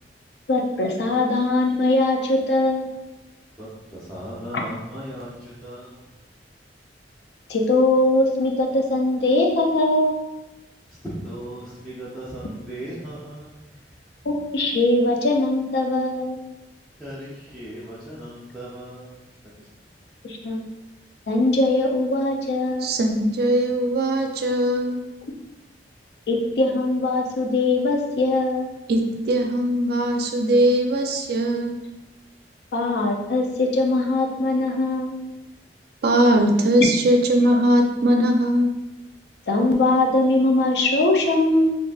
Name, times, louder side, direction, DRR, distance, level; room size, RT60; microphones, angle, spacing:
voice 1, 0.5-2.9 4.5-4.6 7.5-10.2 14.3-16.4 20.2-20.6 21.3-22.9 26.3-28.7 32.7-35.2 39.5-41.8, left 2 dB, 65° left, 1 dB, 0.4 m, -21 dB
voice 2, 3.9-6.1 11.0-13.7 17.0-19.2, equal, 5° left, -11 dB, 0.5 m, -37 dB
voice 3, 22.8-25.0 28.9-31.8 36.0-38.7, right 1 dB, 60° right, 4 dB, 0.4 m, -20 dB
3.7 x 2.5 x 2.3 m, 1.0 s
head